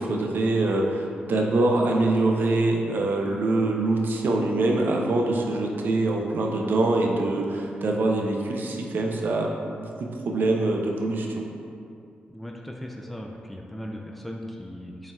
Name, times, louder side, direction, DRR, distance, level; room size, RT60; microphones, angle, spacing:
voice 1, 0.0-9.5 9.8-11.5, right 2 dB, 65° right, 1 dB, 0.5 m, -24 dB
voice 2, 12.3-15.1, equal, 5° left, 0 dB, 0.3 m, -38 dB
4.1 x 3.7 x 2.3 m, 2.5 s
supercardioid pair, 50°, 4 cm